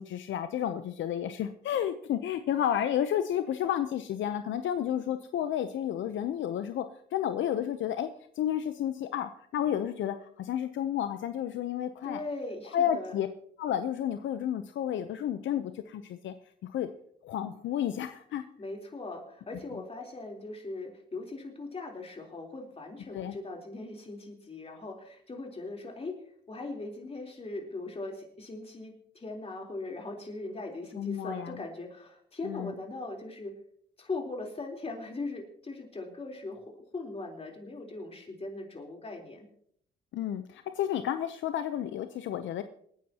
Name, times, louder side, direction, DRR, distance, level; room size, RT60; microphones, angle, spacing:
voice 1, 0.0-6.8 7.1-8.1 8.4-12.2 12.7-13.3 13.6-16.3 16.6-16.9 17.2-18.4 23.1-23.3 31.0-31.6 32.4-32.7 40.1-42.6, left 10 dB, 70° left, 9 dB, 0.7 m, -31 dB
voice 2, 12.0-13.2 18.6-26.2 26.5-33.6 34.0-39.5, left 2 dB, 30° left, 1 dB, 3.7 m, -40 dB
27.0 x 9.7 x 2.9 m, 0.65 s
cardioid pair, 90°, 20 cm